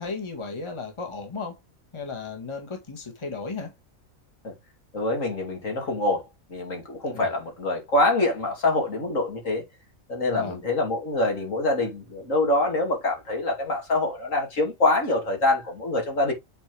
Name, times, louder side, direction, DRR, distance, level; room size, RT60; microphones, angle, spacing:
voice 1, 0.0-1.6 1.9-3.7 7.1-7.3 10.3-10.6, left 4 dB, 20° left, 1.7 m, -34 dB
voice 2, 4.9-6.2 6.5-9.6 10.1-16.3, left 2 dB, 65° left, 2.9 m, -25 dB
7.9 x 4.4 x 3.4 m
omnidirectional pair, 1.5 m